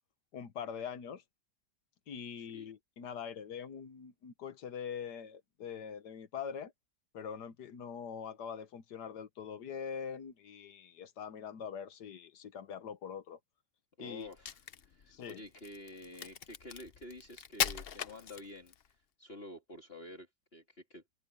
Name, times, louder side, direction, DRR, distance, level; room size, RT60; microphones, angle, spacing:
voice 1, 0.3-1.2 2.1-6.7 7.1-13.4 14.0-14.3 15.1-15.4, left 7 dB, 80° left, 1.7 m, -43 dB
voice 2, 2.3-2.7 14.0-21.0, left 1 dB, 35° left, 3.2 m, -50 dB
Crack, 14.2-18.9, left 8 dB, 55° left, 0.7 m, -39 dB
open air
omnidirectional pair, 1.8 m